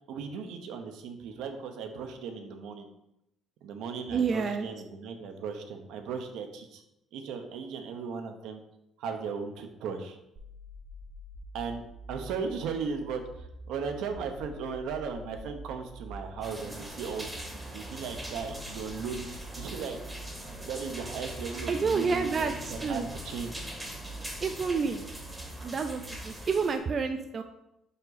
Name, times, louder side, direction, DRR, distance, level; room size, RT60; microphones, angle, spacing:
voice 1, 0.1-2.9 3.6-6.8 7.1-8.6 9.0-10.2 11.5-11.8 12.1-17.3 17.5-20.0 20.7-23.5, right 5 dB, 80° right, 6 dB, 0.8 m, -37 dB
voice 2, 4.1-4.7 21.7-23.1 24.4-25.0 25.6-27.4, right 5 dB, 30° right, 7 dB, 0.3 m, -29 dB
sound 1, 10.4-26.4, right 1 dB, 50° right, 1.0 m, -46 dB
sound 2, 16.4-26.8, right 1 dB, 10° right, 0.8 m, -42 dB
5.4 x 4.8 x 4.0 m, 0.86 s
cardioid pair, 170°, 0 cm